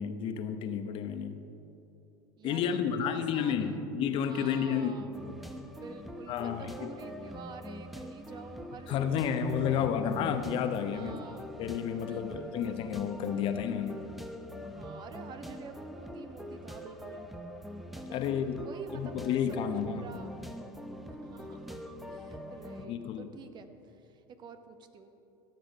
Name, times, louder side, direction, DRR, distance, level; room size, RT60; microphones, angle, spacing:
voice 1, 0.0-1.4 2.4-5.1 6.3-6.9 8.9-11.2 11.6-14.1 18.1-18.6 18.9-20.1 22.8-23.3, left 8 dB, 50° left, 8 dB, 0.9 m, -31 dB
voice 2, 2.4-3.8 4.3-5.1 5.8-9.9 10.9-11.5 12.1-12.6 14.6-17.3 17.9-18.2 18.6-20.3 21.1-21.8 22.1-25.1, right 5 dB, 40° right, 8 dB, 1.0 m, -48 dB
sound 1, 5.1-22.9, equal, ahead, 0.9 m, -44 dB
15.0 x 8.0 x 5.5 m, 2.9 s
hypercardioid pair, 90°, 11 cm